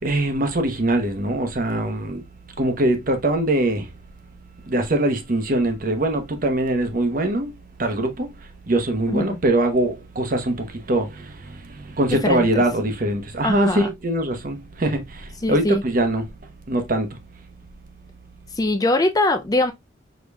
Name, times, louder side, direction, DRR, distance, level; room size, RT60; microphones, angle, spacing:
voice 1, 0.0-2.2 2.6-3.9 4.7-7.5 7.8-8.3 8.7-16.3 16.7-17.2, right 1 dB, 45° right, 0.9 m, -22 dB
voice 2, 9.1-9.4 12.2-12.6 13.4-13.9 15.4-15.8 18.6-19.7, left 2 dB, 20° left, 0.4 m, -22 dB
5.0 x 3.9 x 2.3 m
head